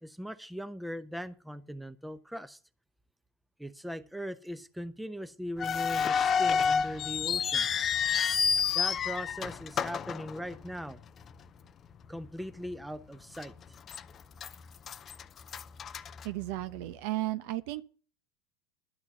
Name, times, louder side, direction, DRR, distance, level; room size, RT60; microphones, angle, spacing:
voice 1, 0.0-2.6 3.6-8.0 8.7-11.0 12.1-13.5, equal, 5° right, 0.8 m, -40 dB
sound 1, 5.6-10.9 11.2-11.3 12.0-12.3 12.7-12.8 13.4-14.0 14.4-16.8, left 6 dB, 30° left, 0.6 m, -29 dB
voice 2, 16.2-17.8, right 16 dB, 60° right, 0.9 m, -34 dB
12.0 x 6.1 x 7.6 m
hypercardioid pair, 85°, 0 cm